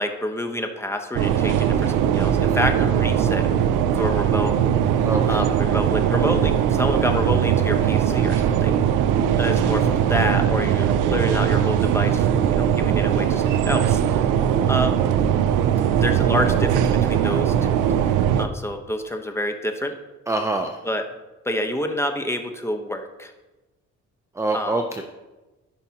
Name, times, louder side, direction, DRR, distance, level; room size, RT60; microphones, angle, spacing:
voice 1, 0.0-3.5 3.9-4.6 5.3-8.8 9.3-14.3 14.7-15.0 15.9-17.8 18.4-19.9 20.8-21.0 21.4-23.3 24.5-24.8, left 1 dB, 10° left, 5 dB, 1.0 m, -28 dB
sound 1, 1.2-18.5, right 9 dB, 85° right, 0.5 m, -20 dB
voice 2, 5.0-5.4 20.3-20.8 24.4-25.0, right 2 dB, 10° right, 5 dB, 0.6 m, -25 dB
14.5 x 5.8 x 2.9 m, 1.1 s
cardioid pair, 90°, 30 cm